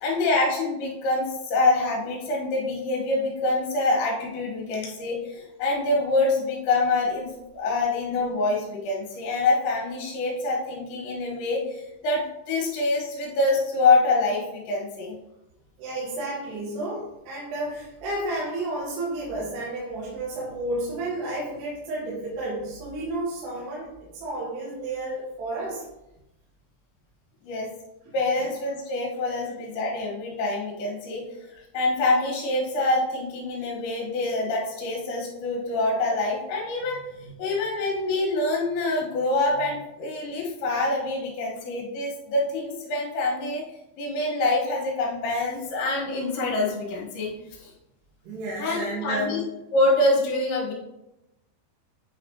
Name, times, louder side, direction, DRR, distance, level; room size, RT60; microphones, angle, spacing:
voice 1, 0.0-7.3 7.5-15.2 27.4-27.7 28.1-31.3 31.7-43.6 44.0-47.7 48.6-49.4 49.7-50.7, left 2 dB, 75° left, -4 dB, 3.6 m, -25 dB
voice 2, 15.8-25.8 28.1-28.2 28.4-28.5 48.2-49.4, right 1 dB, 70° right, -6 dB, 3.1 m, -31 dB
9.0 x 4.2 x 2.9 m, 0.91 s
omnidirectional pair, 5.5 m